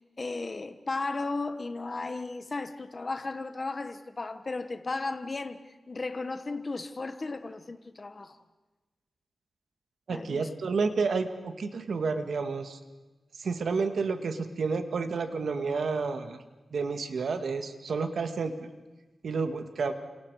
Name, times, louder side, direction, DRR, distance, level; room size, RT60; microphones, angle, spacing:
voice 1, 0.0-5.6 5.9-8.4 10.1-10.7, left 3 dB, 35° left, 1.2 m, -35 dB
voice 2, 10.1-12.8 13.4-16.4 16.7-18.5 19.2-19.9, right 4 dB, 75° right, 1.9 m, -30 dB
29.5 x 28.0 x 4.9 m
wide cardioid pair, 130°, 0 cm